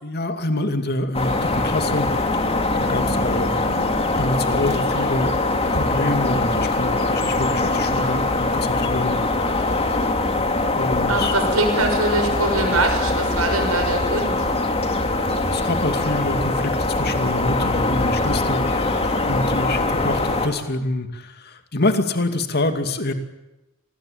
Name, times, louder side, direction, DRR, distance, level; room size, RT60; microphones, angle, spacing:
voice 1, 0.0-2.1 2.8-3.9 4.2-5.4 5.7-9.1 9.6-10.1 10.8-11.3 15.3-23.1, left 2 dB, 50° left, 7 dB, 2.5 m, -26 dB
sound 1, 1.1-20.5, left 2 dB, 30° left, 2.5 m, -22 dB
voice 2, 11.1-14.5, right 2 dB, 80° right, 6 dB, 6.2 m, -23 dB
26.5 x 20.5 x 8.9 m, 0.97 s
head